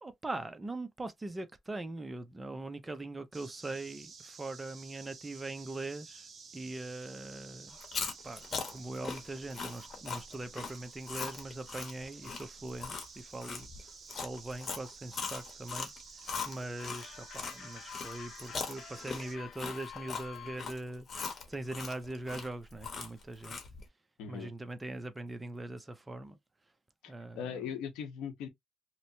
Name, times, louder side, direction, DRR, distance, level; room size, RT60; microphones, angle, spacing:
voice 1, 0.0-7.8 8.2-8.4 8.7-15.9 16.5-23.6 24.3-26.4 27.1-27.7, right 2 dB, 20° right, 0.6 m, -41 dB
sound 1, 3.3-19.4, right 5 dB, 45° right, 0.8 m, -52 dB
Chewing mastication, 7.7-17.6 17.9-23.8, left 5 dB, 45° left, 1.0 m, -40 dB
sound 2, 16.8-20.7, left 9 dB, 60° left, 0.4 m, -49 dB
voice 2, 24.2-24.5 27.0-28.5, left 7 dB, 90° left, 0.8 m, -40 dB
2.9 x 2.1 x 2.7 m
cardioid pair, 85°, 0 cm